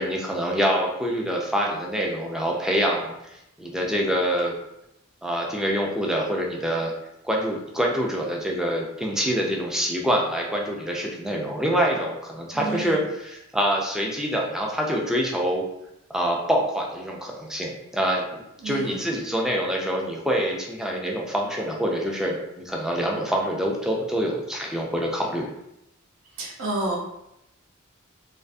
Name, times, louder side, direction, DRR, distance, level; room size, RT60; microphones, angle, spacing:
voice 1, 0.0-4.5 5.2-6.9 7.2-15.6 16.1-25.5, equal, 5° right, -1 dB, 0.3 m, -26 dB
voice 2, 12.5-13.0 18.6-19.0 26.4-27.0, right 2 dB, 65° right, -2 dB, 0.6 m, -30 dB
2.5 x 2.4 x 2.2 m, 0.84 s
head